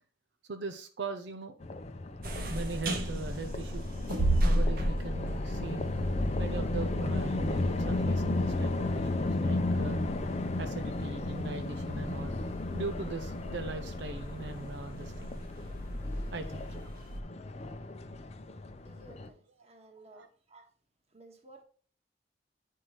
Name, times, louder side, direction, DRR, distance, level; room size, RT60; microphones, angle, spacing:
voice 1, 0.5-1.6 2.5-3.8 4.4-5.9 6.4-10.3 10.6-12.4 12.7-15.3 16.3-16.9 20.1-20.3, right 3 dB, 80° right, 7 dB, 0.6 m, -40 dB
sound 1, 1.6-19.3, left 2 dB, 35° left, 0.5 m, -34 dB
sound 2, 2.2-17.2, right 1 dB, 55° right, 1.1 m, -35 dB
voice 2, 18.8-20.7 21.1-21.6, right 2 dB, 35° right, 4 dB, 1.4 m, -55 dB
9.0 x 4.6 x 3.0 m, 0.43 s
head